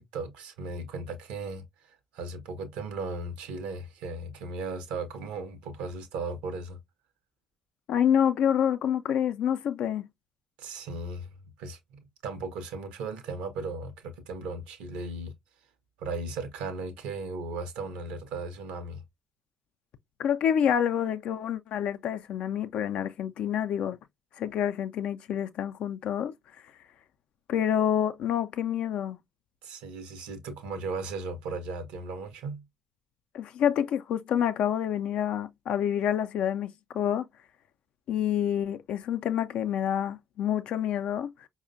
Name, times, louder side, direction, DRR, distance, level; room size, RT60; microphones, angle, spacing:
voice 1, 0.0-6.8 10.6-11.3 11.6-15.3 16.0-19.0 29.6-32.6, right 3 dB, 75° right, 0.7 m, -36 dB
voice 2, 7.9-10.1 20.2-24.0 24.4-26.3 27.5-29.2 33.3-37.3 38.1-41.5, left 9 dB, 65° left, 0.4 m, -27 dB
4.8 x 2.1 x 2.5 m
hypercardioid pair, 45°, 2 cm